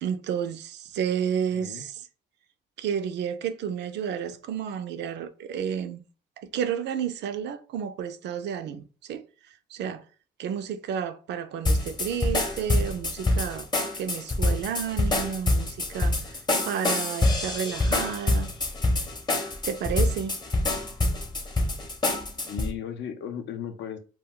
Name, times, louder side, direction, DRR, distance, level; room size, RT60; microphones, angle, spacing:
voice 1, 0.0-2.0 2.8-6.0 6.4-9.3 9.7-10.0 10.4-13.7 14.0-16.2 16.7-18.5 19.6-20.4, right 8 dB, 65° right, 0.4 m, -31 dB
voice 2, 1.5-1.8 22.5-24.0, left 8 dB, 70° left, 0.5 m, -35 dB
sound 1, 11.6-22.7, left 2 dB, 20° left, 0.7 m, -26 dB
2.3 x 2.2 x 3.6 m
supercardioid pair, 75°, 19 cm